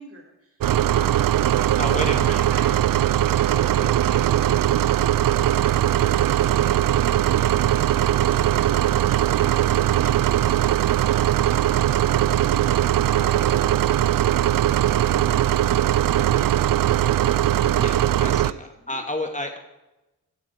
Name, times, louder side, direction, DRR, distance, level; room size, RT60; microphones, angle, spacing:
voice 1, 0.0-3.0 3.5-5.2 18.3-19.0, right 2 dB, 40° right, -1 dB, 6.7 m, -43 dB
sound 1, 0.6-18.5, right 12 dB, 70° right, 0.6 m, -20 dB
voice 2, 1.8-2.5 17.0-17.4 17.7-19.6, left 1 dB, 20° left, 4 dB, 2.5 m, -31 dB
14.5 x 12.5 x 4.7 m, 0.98 s
supercardioid pair, 40°, 35 cm